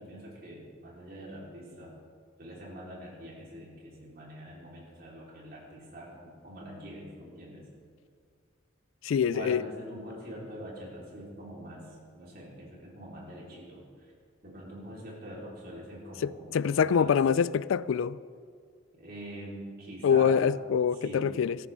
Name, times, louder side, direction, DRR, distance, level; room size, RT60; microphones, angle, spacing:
voice 1, 0.0-1.9 2.4-7.7 9.2-14.1 14.4-17.1 18.9-20.4 20.9-21.4, equal, 50° right, 4.1 m, -44 dB
voice 2, 9.0-9.6 16.2-18.2 20.0-21.6, left 7 dB, 80° left, 0.3 m, -25 dB
18.0 x 13.5 x 3.7 m
head